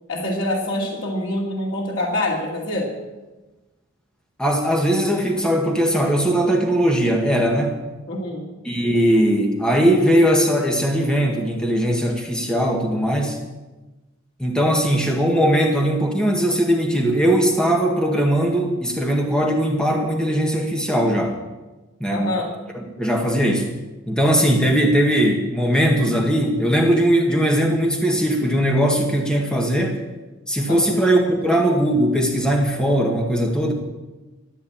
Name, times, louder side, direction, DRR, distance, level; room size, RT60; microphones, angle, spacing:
voice 1, 0.1-2.9 8.1-8.5 22.1-22.5 30.7-31.0, left 1 dB, 85° left, -2 dB, 2.7 m, -25 dB
voice 2, 4.4-7.8 8.6-13.4 14.4-21.4 22.0-22.3 22.7-23.7 24.1-30.0 30.5-33.7, equal, 5° left, 1 dB, 1.8 m, -19 dB
14.0 x 9.4 x 8.8 m, 1.1 s
head